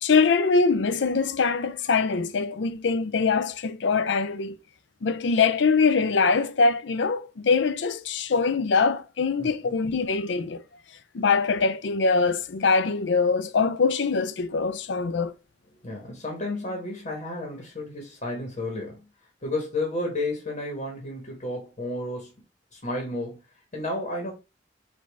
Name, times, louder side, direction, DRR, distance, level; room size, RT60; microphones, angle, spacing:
voice 1, 0.0-4.6 5.0-10.6 11.1-15.3, left 4 dB, 75° left, 0.5 m, -23 dB
voice 2, 9.4-9.7 15.8-19.0 19.4-22.3 22.7-23.4 23.7-24.3, left 2 dB, 40° left, 1.3 m, -32 dB
5.1 x 2.7 x 3.5 m
head